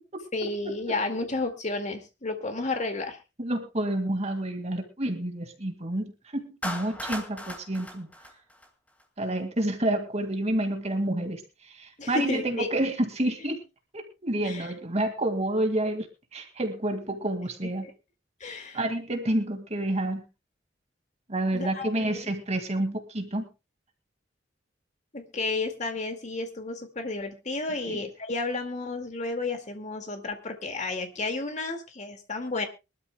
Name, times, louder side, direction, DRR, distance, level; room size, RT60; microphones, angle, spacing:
voice 1, 0.3-3.2 12.0-12.8 14.4-14.7 17.8-17.9 18.4-18.8 21.5-22.2 25.1-32.7, left 3 dB, 40° left, 5 dB, 2.1 m, -32 dB
voice 2, 3.4-8.1 9.2-13.6 13.9-16.1 16.3-17.9 18.7-20.2 21.3-23.5 27.9-28.0, right 1 dB, 40° right, 5 dB, 2.1 m, -29 dB
Clapping, 6.6-9.0, left 1 dB, 10° left, 2.2 m, -37 dB
23.5 x 12.5 x 2.2 m, 0.27 s
head